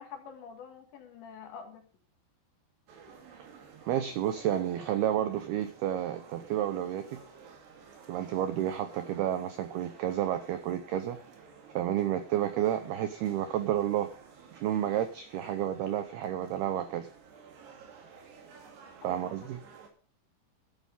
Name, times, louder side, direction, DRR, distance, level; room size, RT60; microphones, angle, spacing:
voice 1, 0.0-1.8 19.0-19.5, left 6 dB, 65° left, 4 dB, 4.0 m, -46 dB
sound 1, 2.9-19.9, right 6 dB, 60° right, 4.2 m, -53 dB
voice 2, 3.9-7.2 8.1-11.2 11.7-14.1 14.5-17.1 19.0-19.6, right 11 dB, 80° right, 10 dB, 2.3 m, -30 dB
13.5 x 10.0 x 5.3 m, 0.39 s
omnidirectional pair, 5.7 m